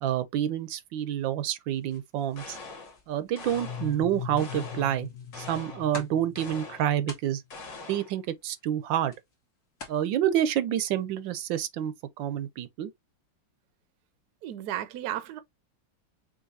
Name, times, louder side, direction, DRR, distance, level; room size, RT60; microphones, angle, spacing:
voice 1, 0.0-2.6 3.1-5.1 5.4-7.4 7.9-9.1 9.9-12.9, right 11 dB, 85° right, 1.4 m, -28 dB
sound 1, 1.7-10.0, left 2 dB, 45° left, 2.1 m, -50 dB
sound 2, 2.4-3.0 3.4-4.0 4.4-5.0 5.3-5.9 6.4-6.9 7.5-8.2, left 3 dB, 70° left, 2.5 m, -43 dB
sound 3, 3.5-7.2, left 7 dB, 85° left, 1.6 m, -40 dB
voice 2, 14.4-15.4, right 12 dB, 65° right, 1.1 m, -34 dB
6.3 x 3.0 x 2.7 m
omnidirectional pair, 2.0 m